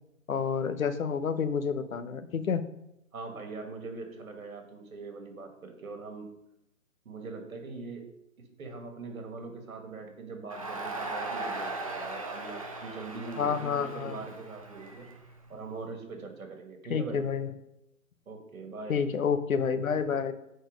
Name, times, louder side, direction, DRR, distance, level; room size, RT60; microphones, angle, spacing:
voice 1, 0.3-2.6 13.4-14.2 16.9-17.5 18.9-20.3, left 6 dB, 70° left, 11 dB, 0.9 m, -29 dB
voice 2, 3.1-6.3 7.1-8.1 8.6-15.1 15.5-17.2 18.3-19.0, right 3 dB, 70° right, 4 dB, 2.0 m, -42 dB
Crowd, 10.5-15.7, right 2 dB, 25° right, 0.5 m, -38 dB
8.1 x 4.4 x 5.1 m, 0.82 s
hypercardioid pair, 160°, 43 cm